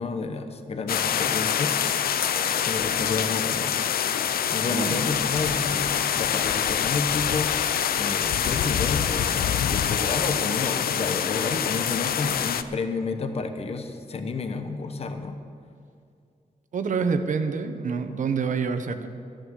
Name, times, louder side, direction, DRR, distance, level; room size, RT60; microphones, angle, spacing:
voice 1, 0.0-1.8 2.6-3.8 4.5-7.7 8.0-15.4, left 4 dB, 45° left, 7 dB, 1.0 m, -30 dB
Tropical rain w thunder, 0.9-12.6, left 9 dB, 85° left, 0.6 m, -25 dB
voice 2, 4.7-5.3 16.7-19.1, right 5 dB, 55° right, 8 dB, 1.0 m, -27 dB
14.5 x 10.0 x 6.4 m, 2.3 s
wide cardioid pair, 145°, 15 cm